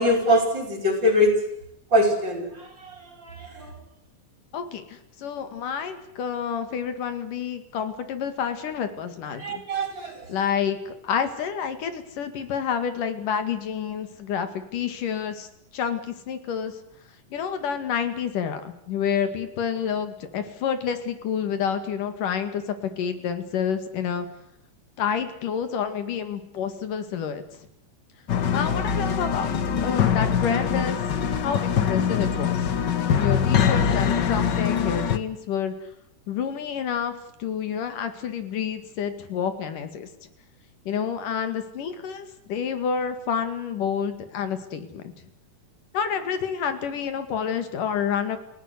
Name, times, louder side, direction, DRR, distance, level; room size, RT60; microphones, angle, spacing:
voice 1, 0.0-1.3 1.9-3.7 9.4-10.3, equal, 35° right, 5 dB, 6.1 m, -23 dB
voice 2, 4.5-9.6 10.3-15.5 15.7-16.8 17.3-24.3 25.0-27.4 28.5-31.0 31.4-32.7 33.1-35.8 36.3-37.2 37.4-40.1 40.9-45.1 45.9-48.4, left 7 dB, 80° left, 9 dB, 3.7 m, -29 dB
sound 1, 28.3-35.2, left 7 dB, 55° left, 1.3 m, -23 dB
29.5 x 17.0 x 8.2 m, 0.78 s
omnidirectional pair, 3.7 m